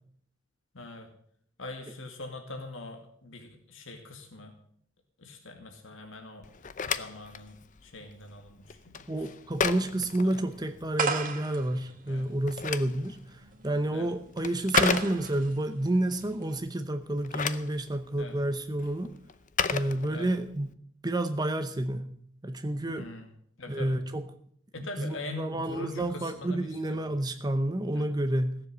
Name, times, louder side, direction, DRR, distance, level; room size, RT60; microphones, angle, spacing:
voice 1, 0.7-1.1 1.6-4.5 5.2-6.5 6.8-7.6 7.8-9.0 10.2-10.4 12.1-12.2 13.9-14.1 18.2-18.4 20.1-20.3 23.0-23.3 23.6-24.0 24.7-26.6 26.8-27.1 27.9-28.0, left 2 dB, 65° left, 3 dB, 2.2 m, -42 dB
Telephone, 6.4-11.0 12.2-15.6 17.0-20.6, left 6 dB, 40° left, 0.6 m, -34 dB
voice 2, 9.1-19.1 19.7-20.7 21.0-22.1 22.4-23.1 23.7-24.3 24.8-28.6, right 1 dB, 20° right, 8 dB, 0.8 m, -30 dB
sound 1, 11.0-16.6, right 5 dB, 40° right, 1.7 m, -35 dB
16.5 x 7.4 x 8.0 m, 0.65 s
head